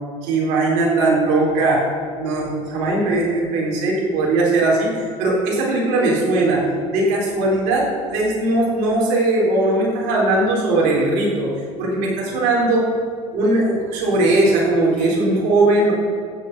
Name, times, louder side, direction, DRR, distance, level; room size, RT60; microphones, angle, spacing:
voice 1, 0.2-1.8 2.2-6.6 6.9-11.5 11.8-12.9 13.3-15.9, right 2 dB, 65° right, -4 dB, 4.0 m, -19 dB
15.5 x 8.4 x 5.4 m, 2.2 s
supercardioid pair, 95°, 17 cm